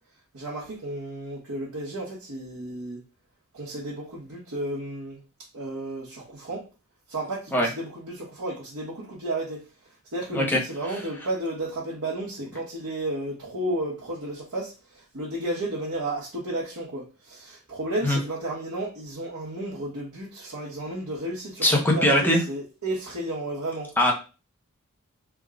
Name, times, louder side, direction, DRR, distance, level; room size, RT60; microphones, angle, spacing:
voice 1, 0.3-3.0 3.5-5.2 5.5-6.7 7.1-9.6 10.1-23.9, right 1 dB, 80° right, 1.2 m, -33 dB
voice 2, 21.6-22.4 24.0-24.1, left 1 dB, 10° left, 0.8 m, -20 dB
3.5 x 2.3 x 3.6 m
head